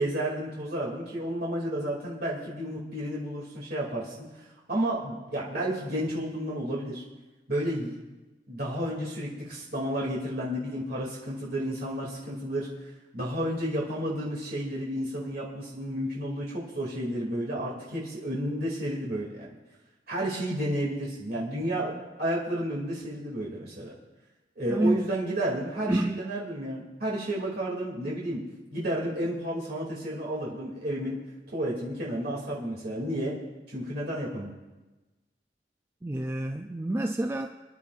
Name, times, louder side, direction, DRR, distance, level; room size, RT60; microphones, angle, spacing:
voice 1, 0.0-7.0 7.5-8.0 8.5-12.7 13.1-19.5 20.1-23.9 24.6-28.4 28.7-31.2 31.5-33.4 33.7-34.5, right 1 dB, 60° right, 2.5 m, -31 dB
voice 2, 24.7-25.1 25.9-26.2 36.0-37.5, right 1 dB, 15° right, 0.3 m, -28 dB
26.5 x 11.0 x 2.5 m
head